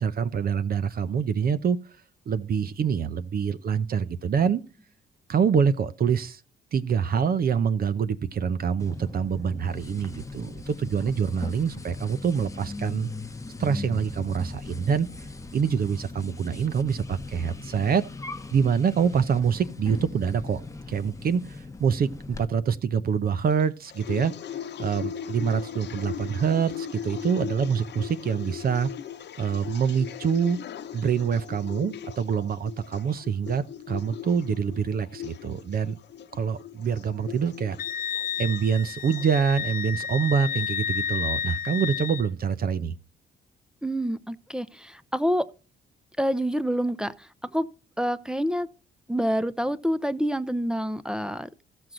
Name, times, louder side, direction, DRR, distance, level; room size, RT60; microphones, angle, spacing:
voice 1, 0.0-1.8 2.3-4.6 5.3-6.4 6.7-13.1 13.6-15.1 15.5-18.0 18.5-20.6 20.9-24.3 24.8-28.9 29.4-30.6 30.9-36.0 36.3-37.8 38.4-42.9, right 7 dB, 50° right, 0.7 m, -25 dB
sound 1, 8.8-22.4, left 2 dB, 15° left, 0.9 m, -39 dB
sound 2, 23.6-39.3, left 9 dB, 60° left, 1.0 m, -39 dB
Wind instrument woodwind instrument, 37.8-42.3, left 8 dB, 45° left, 0.6 m, -31 dB
voice 2, 43.8-45.5 46.2-47.7 48.0-48.7 49.1-51.5, equal, 5° right, 0.6 m, -27 dB
15.0 x 6.2 x 3.9 m
cardioid pair, 90°, 20 cm